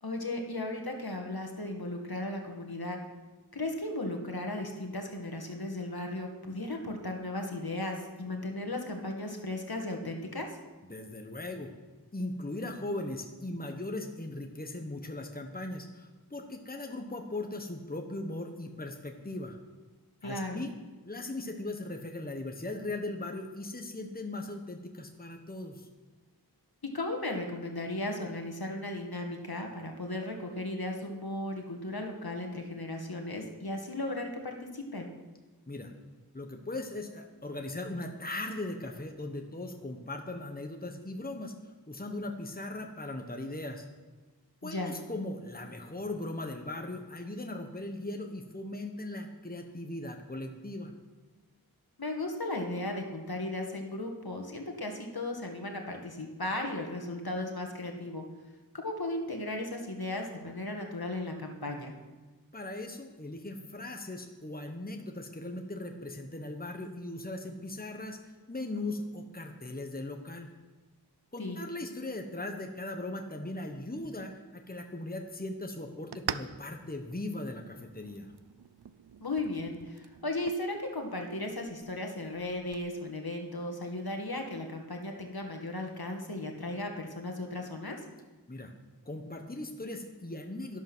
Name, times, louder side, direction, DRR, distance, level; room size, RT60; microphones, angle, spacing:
voice 1, 0.0-3.0 3.5-10.6 20.2-20.6 26.9-35.1 44.6-44.9 52.0-58.2 58.7-61.9 71.4-71.6 79.2-88.0, left 2 dB, 70° left, 3 dB, 1.9 m, -36 dB
voice 2, 10.9-11.7 12.1-19.6 20.2-20.7 21.0-25.9 35.7-35.9 36.3-43.9 44.6-50.9 62.5-70.5 71.3-78.3 88.5-88.7 89.0-90.8, left 2 dB, 25° left, 4 dB, 1.3 m, -39 dB
sound 1, 73.9-82.9, right 8 dB, 80° right, 0.6 m, -46 dB
12.0 x 11.5 x 6.2 m, 1.3 s
wide cardioid pair, 45°, 39 cm